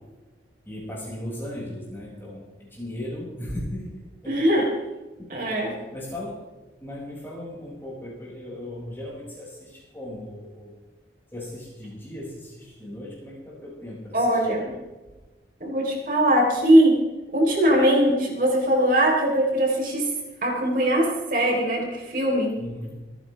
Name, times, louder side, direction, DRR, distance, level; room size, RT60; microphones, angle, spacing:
voice 1, 0.7-4.4 5.2-5.4 5.9-6.4 6.8-10.7 11.3-14.6 22.6-23.1, left 1 dB, 10° left, -5 dB, 6.2 m, -37 dB
voice 2, 4.3-4.7 5.3-5.8 14.1-14.7 15.6-17.0 17.3-20.1 20.4-22.5, right 1 dB, 50° right, -1 dB, 3.9 m, -21 dB
27.0 x 10.5 x 3.4 m, 1.2 s
head